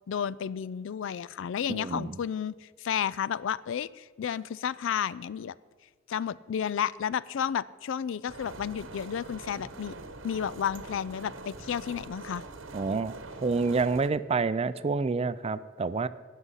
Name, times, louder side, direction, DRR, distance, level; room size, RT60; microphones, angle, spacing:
voice 1, 0.1-5.5 6.1-10.0 10.2-12.4, left 8 dB, 70° left, 19 dB, 0.4 m, -32 dB
voice 2, 1.7-2.2 12.7-13.1 13.4-16.1, right 4 dB, 30° right, 15 dB, 0.4 m, -28 dB
sound 1, 8.3-14.1, right 3 dB, 75° right, 1.0 m, -44 dB
18.0 x 6.5 x 5.5 m, 1.5 s
head